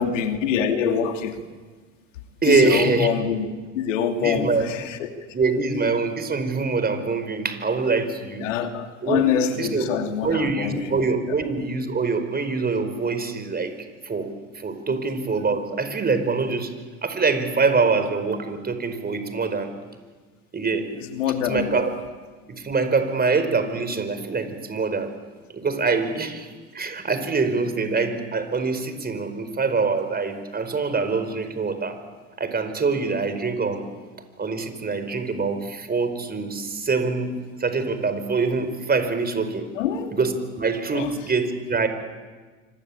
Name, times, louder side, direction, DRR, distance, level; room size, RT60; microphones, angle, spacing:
voice 1, 0.0-1.4 2.5-3.5 3.7-5.1 8.4-11.0 14.9-15.0 21.1-21.8 39.8-40.1 40.9-41.1, left 7 dB, 85° left, 6 dB, 2.7 m, -25 dB
voice 2, 2.4-3.1 4.2-4.7 5.3-8.4 9.0-9.3 9.5-10.0 10.2-13.7 14.0-16.7 17.0-19.7 20.5-20.9 21.4-21.9 22.5-25.1 25.5-32.0 32.4-33.8 34.4-39.7 40.1-41.9, right 4 dB, 25° right, 10 dB, 4.8 m, -24 dB
27.0 x 25.5 x 8.7 m, 1.4 s
hypercardioid pair, 80°, 37 cm